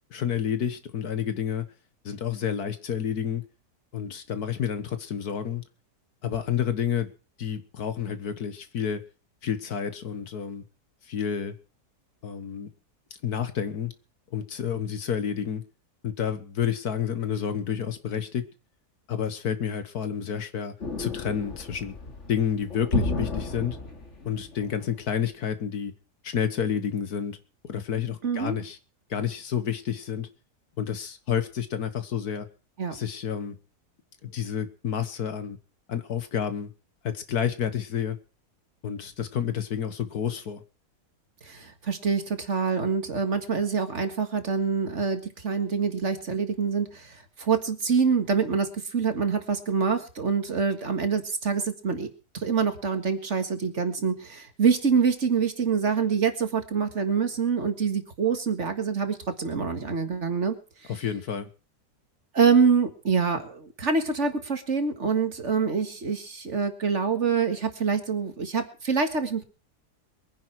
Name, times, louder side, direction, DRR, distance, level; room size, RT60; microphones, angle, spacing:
voice 1, 0.1-1.7 2.1-3.4 3.9-5.6 6.2-7.1 7.4-9.0 9.4-10.6 11.1-11.6 12.2-12.7 13.2-13.9 14.3-15.6 16.0-18.5 19.1-21.9 22.3-23.8 24.3-25.9 26.2-27.4 27.6-28.8 29.1-30.3 30.8-32.5 32.9-33.6 34.2-35.6 35.9-36.7 37.0-38.2 38.8-40.6 60.9-61.5, left 8 dB, 65° left, 1.8 m, -29 dB
sound 1, 20.8-24.9, left 2 dB, 45° left, 2.7 m, -32 dB
voice 2, 28.2-28.6 32.8-32.9 41.4-52.1 52.3-60.6 60.8-60.9 62.3-69.4, right 5 dB, 45° right, 2.0 m, -25 dB
22.5 x 10.5 x 4.6 m
omnidirectional pair, 1.8 m